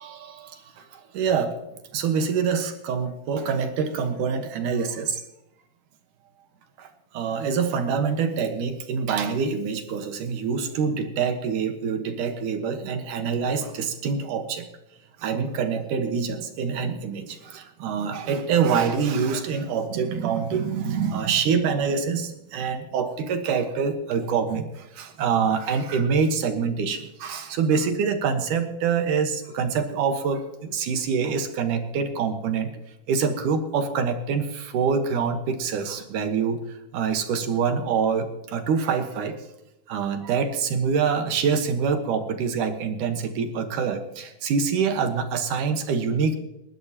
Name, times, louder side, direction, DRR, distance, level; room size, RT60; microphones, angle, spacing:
voice 1, 0.0-1.6 1.9-5.2 6.8-6.9 7.1-14.7 15.2-32.7 33.1-39.3 39.9-46.4, right 6 dB, 65° right, 6 dB, 2.6 m, -25 dB
30.0 x 12.0 x 3.0 m, 0.90 s
omnidirectional pair, 4.5 m